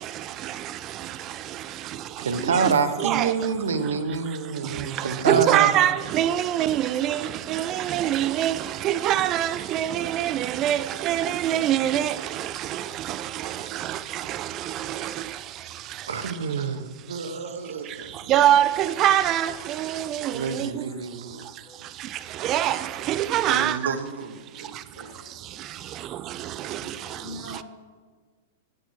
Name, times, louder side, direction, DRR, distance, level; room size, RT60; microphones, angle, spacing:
voice 1, 2.2-5.7 13.4-13.7 16.1-18.3 20.3-21.5 23.5-24.7 25.0-25.1, right 5 dB, 85° right, 0.8 m, -28 dB
voice 2, 3.0-3.3 5.3-7.2 7.5-8.6 8.8-12.2 13.9-14.0 18.3-19.5 19.8-20.7 22.4-22.8 23.1-23.8, right 12 dB, 40° right, 0.3 m, -23 dB
voice 3, 21.4-21.8 24.6-25.3 26.6-27.6, left 2 dB, 65° left, 2.1 m, -45 dB
8.7 x 6.4 x 5.6 m
hypercardioid pair, 110°, 0 cm